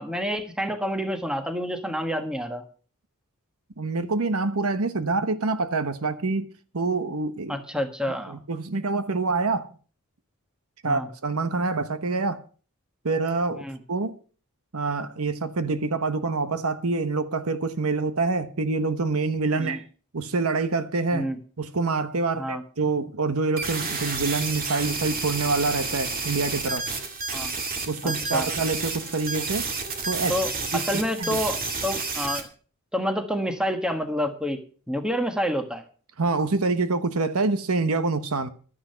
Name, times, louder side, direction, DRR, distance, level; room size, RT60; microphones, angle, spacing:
voice 1, 0.0-2.6 7.5-8.4 10.8-11.1 13.6-13.8 19.6-19.8 21.1-21.4 22.4-22.6 27.3-27.5 28.0-28.5 30.3-32.5 32.9-34.6 34.9-35.8, equal, 5° right, 1.4 m, -28 dB
voice 2, 3.8-6.5 6.7-7.5 8.3-9.7 10.8-12.4 13.0-14.1 14.7-19.8 20.1-21.3 21.6-26.9 27.9-29.7 30.0-30.4 30.7-30.8 31.2-31.4 36.2-38.5, right 3 dB, 75° right, 1.0 m, -26 dB
sound 1, 23.6-32.4, right 4 dB, 40° right, 2.2 m, -30 dB
12.5 x 10.0 x 5.7 m
head